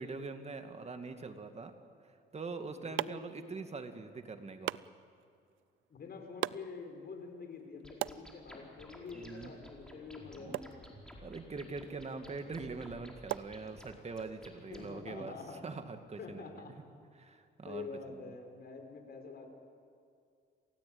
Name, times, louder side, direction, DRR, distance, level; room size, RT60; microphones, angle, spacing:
voice 1, 0.0-1.7 2.3-4.8 9.1-9.5 10.4-10.6 11.2-15.3 15.6-16.6 17.2-17.9, right 4 dB, 35° right, 7 dB, 2.3 m, -43 dB
sound 1, 2.3-14.2, right 15 dB, 80° right, 0.5 m, -45 dB
voice 2, 2.7-3.5 5.9-10.9 14.7-15.6 16.2-16.7 17.6-19.5, left 4 dB, 55° left, 4 dB, 4.8 m, -46 dB
sound 2, 7.8-14.9, equal, 5° left, 4.7 m, -54 dB
28.0 x 17.0 x 8.8 m, 2.4 s
cardioid pair, 90°, 20 cm